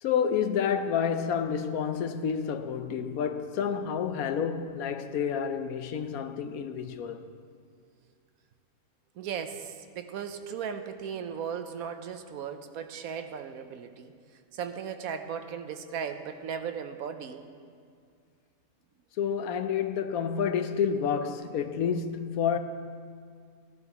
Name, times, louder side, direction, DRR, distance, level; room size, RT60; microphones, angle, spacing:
voice 1, 0.0-7.3 19.2-22.6, left 7 dB, 75° left, 1.1 m, -29 dB
voice 2, 9.2-14.1 14.5-17.4, right 7 dB, 75° right, 1.1 m, -37 dB
16.5 x 12.0 x 2.9 m
omnidirectional pair, 1.6 m